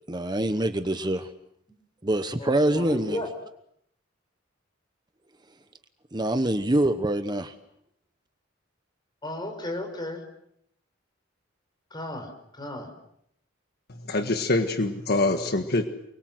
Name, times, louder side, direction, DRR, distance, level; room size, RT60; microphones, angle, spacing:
voice 1, 0.1-1.3 2.0-3.2 6.1-7.5, right 1 dB, 20° right, 9 dB, 1.1 m, -25 dB
voice 2, 2.4-3.3 9.2-10.2 11.9-12.3 12.6-12.9, left 1 dB, 20° left, 4 dB, 5.6 m, -34 dB
voice 3, 14.1-15.9, left 2 dB, 50° left, 7 dB, 1.7 m, -24 dB
28.5 x 22.5 x 7.8 m, 0.74 s
head